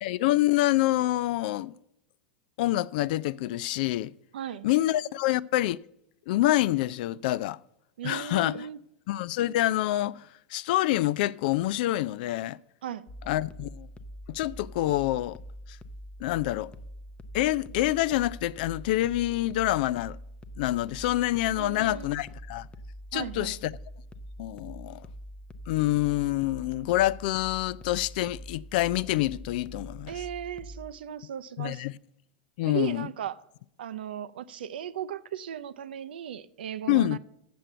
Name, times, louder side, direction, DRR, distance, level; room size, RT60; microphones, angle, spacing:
voice 1, 0.0-1.7 2.6-4.1 4.6-5.8 6.3-7.6 8.0-8.7 9.1-12.6 13.3-13.9 14.3-15.4 15.7-15.8 16.2-16.7 17.3-20.2 20.6-22.7 23.1-23.7 24.4-25.1 25.7-30.1 31.6-31.9 32.6-33.1 36.9-37.2, left 15 dB, 60° left, 0.3 m, -27 dB
voice 2, 4.3-4.7 8.0-8.8 12.8-13.1 21.5-22.1 23.1-23.6 30.1-31.9 32.6-33.4 33.8-37.2, right 10 dB, 80° right, 0.5 m, -36 dB
sound 1, 13.1-30.9, equal, 20° left, 0.6 m, -44 dB
7.5 x 6.9 x 7.8 m
hypercardioid pair, 105°, 5 cm